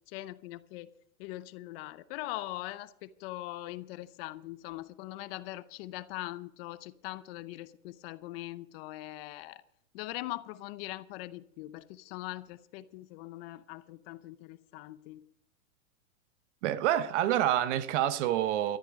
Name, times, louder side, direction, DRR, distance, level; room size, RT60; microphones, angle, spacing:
voice 1, 0.1-0.9 1.2-9.6 9.9-15.2, left 17 dB, 45° left, 0.8 m, -41 dB
voice 2, 16.6-18.8, right 12 dB, 55° right, 1.1 m, -27 dB
13.0 x 13.0 x 5.2 m
hypercardioid pair, 130°, 42 cm